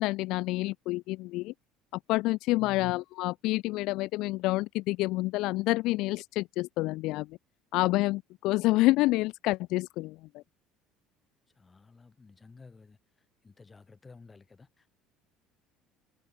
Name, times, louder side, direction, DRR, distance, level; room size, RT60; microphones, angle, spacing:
voice 1, 0.0-1.5 1.9-7.3 7.7-10.4, left 20 dB, 65° left, 0.9 m, -28 dB
voice 2, 2.5-2.9 11.5-14.9, left 4 dB, 25° left, 3.7 m, -54 dB
hypercardioid pair, 70°, 0 cm